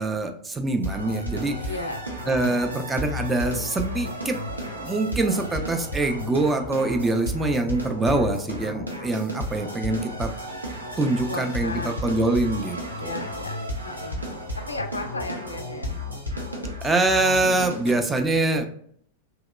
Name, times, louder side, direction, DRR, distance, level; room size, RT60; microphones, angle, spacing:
voice 1, 0.0-1.5 2.3-4.4 4.8-10.3 11.0-13.1 16.8-18.7, right 2 dB, 15° right, 5 dB, 0.4 m, -24 dB
sound 1, 0.8-18.0, left 1 dB, 80° right, 0.6 m, -33 dB
voice 2, 1.6-2.0 11.3-12.1 13.0-16.0, left 3 dB, 80° left, 6 dB, 0.3 m, -35 dB
2.8 x 2.8 x 2.2 m, 0.63 s
figure-of-eight pair, 90°, 0 cm